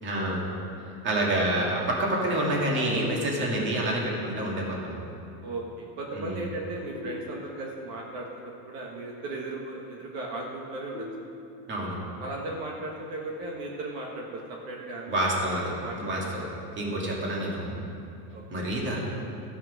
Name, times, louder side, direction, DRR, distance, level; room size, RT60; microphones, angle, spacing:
voice 1, 0.0-0.5 1.0-5.0 6.1-6.4 11.7-12.0 15.1-15.7 16.0-16.5 16.8-17.8 18.5-19.0, right 1 dB, 25° right, -3 dB, 2.0 m, -28 dB
sound 1, 2.9-3.9 6.9-7.9 10.9-11.9, left 2 dB, 50° left, 1.3 m, -43 dB
voice 2, 5.4-11.1 12.2-16.5 18.3-18.7, right 2 dB, 55° right, -2 dB, 1.5 m, -37 dB
14.0 x 5.9 x 6.2 m, 2.7 s
supercardioid pair, 160°, 46 cm